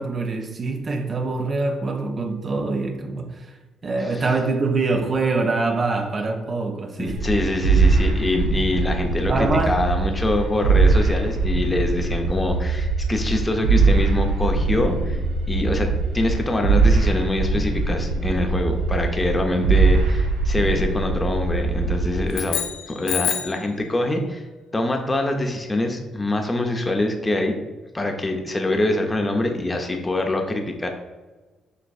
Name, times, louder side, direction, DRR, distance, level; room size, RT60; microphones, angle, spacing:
voice 1, 0.0-3.5 3.8-7.2 9.3-9.8, right 3 dB, 45° right, 0.5 m, -24 dB
voice 2, 4.0-4.3 7.0-15.2 15.5-22.6 22.9-24.4 24.7-27.6 27.9-30.9, left 2 dB, 25° left, 0.6 m, -24 dB
sound 1, 7.1-22.3, right 3 dB, 85° right, 0.6 m, -21 dB
sound 2, 22.3-23.7, left 10 dB, 85° left, 0.4 m, -27 dB
6.5 x 2.5 x 2.4 m
hypercardioid pair, 50°, 0 cm